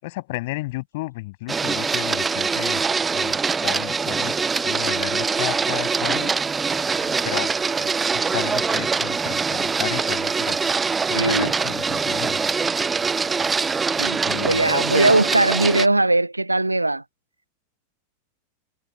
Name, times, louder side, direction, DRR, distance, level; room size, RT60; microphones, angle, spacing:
voice 1, 0.0-3.4 3.6-6.6 7.0-10.8 11.1-12.5 14.3-14.7, left 21 dB, 50° left, 6.5 m, -33 dB
Printer, 1.5-15.9, right 5 dB, 15° right, 0.4 m, -23 dB
voice 2, 11.2-11.5 14.0-17.0, right 2 dB, 85° right, 0.5 m, -20 dB
figure-of-eight pair, 90°, 0 cm